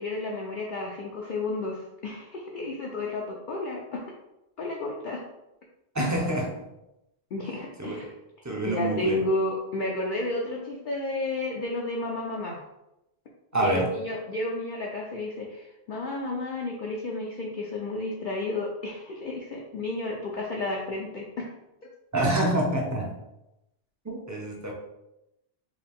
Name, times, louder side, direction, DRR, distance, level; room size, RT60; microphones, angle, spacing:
voice 1, 0.0-4.0 4.6-5.2 6.0-6.2 7.3-8.1 8.6-12.6 13.6-21.5, left 2 dB, 55° left, -2 dB, 0.6 m, -32 dB
voice 2, 5.9-6.5 7.8-8.1 8.4-9.2 13.5-13.9 22.1-23.1 24.0-24.7, right 1 dB, 20° right, -1 dB, 0.5 m, -26 dB
4.7 x 2.3 x 3.6 m, 0.91 s
omnidirectional pair, 1.2 m